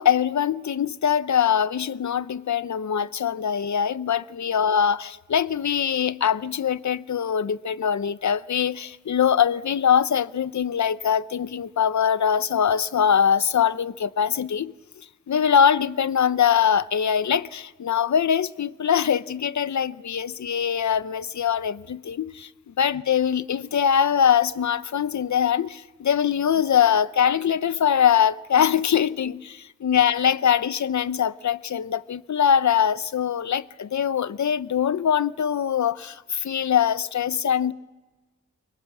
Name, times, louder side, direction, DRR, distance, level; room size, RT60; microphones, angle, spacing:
voice 1, 0.0-14.7 15.3-22.5 22.8-37.7, left 8 dB, 70° left, 0.8 m, -22 dB
27.5 x 23.5 x 7.2 m
wide cardioid pair, 125°, 30 cm